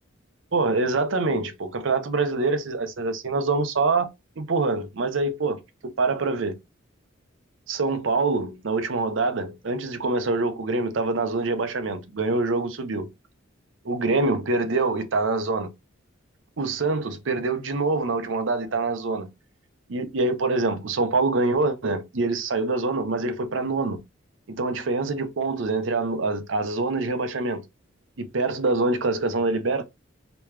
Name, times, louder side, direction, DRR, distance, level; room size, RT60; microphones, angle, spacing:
voice 1, 0.5-4.1 4.4-6.6 7.7-13.1 13.8-15.7 16.6-19.3 19.9-24.0 24.5-27.6 28.2-29.8, right 3 dB, 75° right, 0.7 m, -25 dB
3.2 x 3.0 x 3.2 m
head